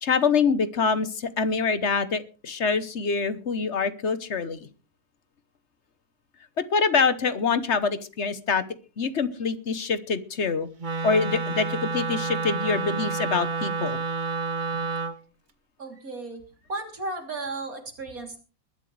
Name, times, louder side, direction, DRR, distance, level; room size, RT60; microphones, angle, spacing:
voice 1, 0.0-4.7 6.6-8.6 9.0-10.7 11.0-14.0, left 5 dB, 55° left, 13 dB, 1.3 m, -25 dB
Wind instrument woodwind instrument, 10.8-15.2, right 4 dB, 35° right, 1.1 m, -29 dB
voice 2, 15.8-16.4 16.7-18.4, right 2 dB, 90° right, 3 dB, 3.7 m, -34 dB
21.0 x 12.0 x 3.3 m, 0.35 s
omnidirectional pair, 1.5 m